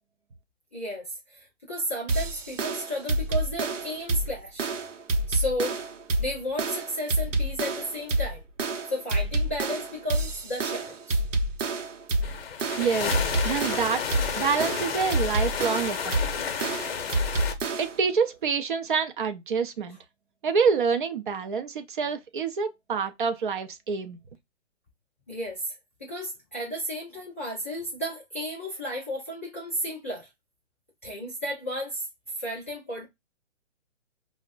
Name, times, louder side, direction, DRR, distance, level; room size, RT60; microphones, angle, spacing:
voice 1, 0.7-4.7 5.3-5.8 6.2-8.4 8.9-11.2 25.3-25.7 26.0-30.3 31.0-32.1 32.4-33.1, equal, 15° left, 0.4 m, -33 dB
sound 1, 2.1-18.1, right 2 dB, 90° right, 0.7 m, -28 dB
sound 2, 12.2-17.5, left 6 dB, 55° left, 0.7 m, -31 dB
voice 2, 12.8-14.0 14.4-16.1 17.8-20.0 20.4-24.2, right 6 dB, 45° right, 0.5 m, -27 dB
5.0 x 2.1 x 2.3 m
hypercardioid pair, 145°, 36 cm